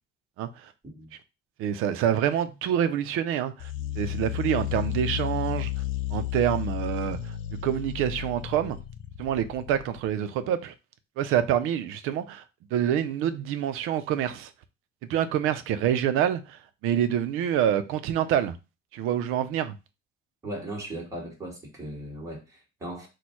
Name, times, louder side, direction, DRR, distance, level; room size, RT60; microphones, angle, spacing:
voice 1, 0.4-0.7 1.6-5.7 6.1-7.3 7.6-8.8 9.2-10.7 11.2-12.4 12.7-14.5 15.1-18.6 18.9-19.8, right 10 dB, 90° right, 0.6 m, -26 dB
sound 1, 3.6-10.1, left 14 dB, 70° left, 0.5 m, -33 dB
voice 2, 20.4-23.1, right 1 dB, 15° right, 1.4 m, -37 dB
4.3 x 2.3 x 4.5 m
cardioid pair, 175°, 21 cm